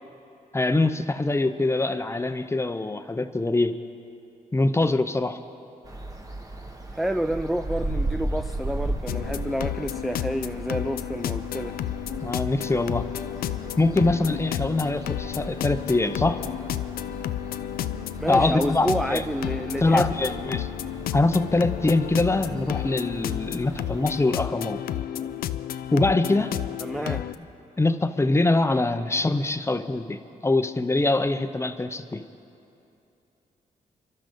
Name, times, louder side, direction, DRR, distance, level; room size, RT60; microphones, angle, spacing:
voice 1, 0.5-3.8 4.5-5.4 12.2-13.1 13.8-16.4 18.3-19.2 19.8-20.7 21.1-24.8 25.9-26.5 27.0-27.2 27.8-32.2, left 2 dB, 20° left, 10 dB, 0.7 m, -23 dB
sound 1, 5.8-24.2, right 2 dB, 25° right, 1.4 m, -37 dB
voice 2, 6.9-11.8 18.2-20.1 26.8-27.3, equal, ahead, 9 dB, 0.3 m, -29 dB
sound 2, 9.1-27.3, left 12 dB, 85° left, 0.4 m, -32 dB
27.0 x 12.0 x 3.8 m, 2.8 s
cardioid pair, 70°, 15 cm